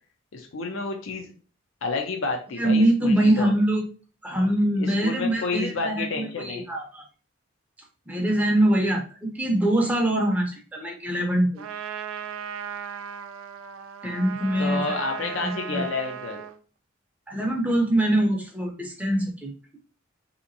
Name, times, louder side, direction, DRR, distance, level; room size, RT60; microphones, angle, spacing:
voice 1, 0.3-1.3 1.8-3.5 4.8-6.7 14.6-16.4, left 3 dB, 70° left, 2 dB, 0.5 m, -30 dB
voice 2, 2.6-3.8 4.2-7.0 8.1-11.6 14.0-15.0 15.4-15.8 17.3-19.5, right 1 dB, 10° right, 0 dB, 0.5 m, -23 dB
Trumpet, 11.6-16.6, right 8 dB, 90° right, 0.4 m, -36 dB
3.4 x 2.8 x 2.5 m, 0.37 s
head